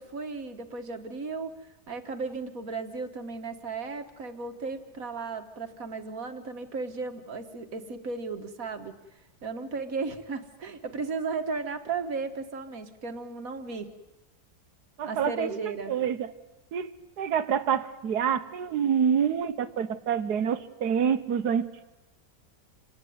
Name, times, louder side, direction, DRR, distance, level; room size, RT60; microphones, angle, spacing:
voice 1, 0.0-9.0 9.4-13.9 15.1-15.9, right 4 dB, 60° right, 7 dB, 1.9 m, -35 dB
voice 2, 15.0-15.6 15.9-16.3 16.7-16.9 17.2-21.8, right 8 dB, 75° right, 12 dB, 1.6 m, -27 dB
27.0 x 19.0 x 9.4 m, 1.1 s
omnidirectional pair, 1.7 m